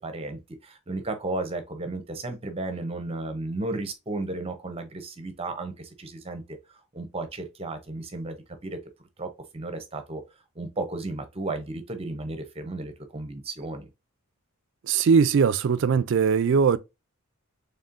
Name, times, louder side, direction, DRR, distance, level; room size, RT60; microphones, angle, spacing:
voice 1, 0.0-8.4 8.6-8.8 9.2-10.2 10.6-13.9, right 2 dB, 25° right, 0.7 m, -34 dB
voice 2, 14.8-16.8, right 6 dB, 60° right, 0.3 m, -20 dB
4.2 x 3.4 x 2.5 m
head